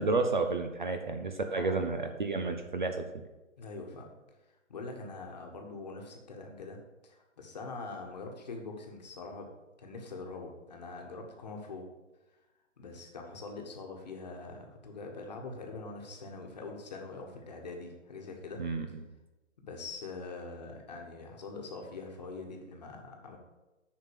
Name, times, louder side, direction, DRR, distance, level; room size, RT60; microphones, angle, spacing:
voice 1, 0.0-2.9 18.6-18.9, right 3 dB, 40° right, 6 dB, 0.7 m, -31 dB
voice 2, 1.5-2.0 3.6-4.1 4.7-6.8 7.0-9.5 9.8-11.9 12.8-18.6 19.6-23.4, left 3 dB, 35° left, 2 dB, 1.4 m, -43 dB
8.6 x 5.6 x 7.2 m, 1.1 s
hypercardioid pair, 175°, 38 cm